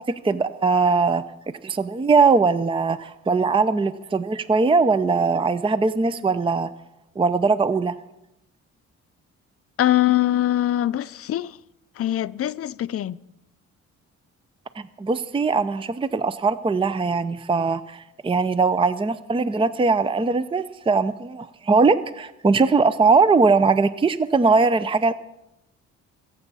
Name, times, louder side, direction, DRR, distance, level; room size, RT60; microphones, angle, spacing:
voice 1, 0.2-1.2 1.6-6.7 7.2-7.9 14.8-25.1, right 4 dB, 20° right, 0.6 m, -20 dB
voice 2, 9.8-11.6 12.0-13.2, left 13 dB, 50° left, 0.6 m, -22 dB
24.0 x 8.3 x 5.5 m
cardioid pair, 90°, 30 cm